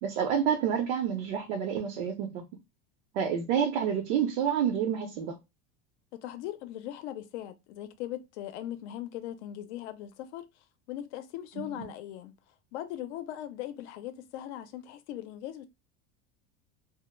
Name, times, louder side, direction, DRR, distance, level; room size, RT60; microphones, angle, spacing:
voice 1, 0.0-2.4 3.1-5.3 11.6-11.9, right 8 dB, 90° right, 0.6 m, -29 dB
voice 2, 6.1-10.5 10.9-12.4 12.7-15.7, left 12 dB, 85° left, 0.6 m, -39 dB
2.1 x 2.0 x 3.0 m
supercardioid pair, 130°, 34 cm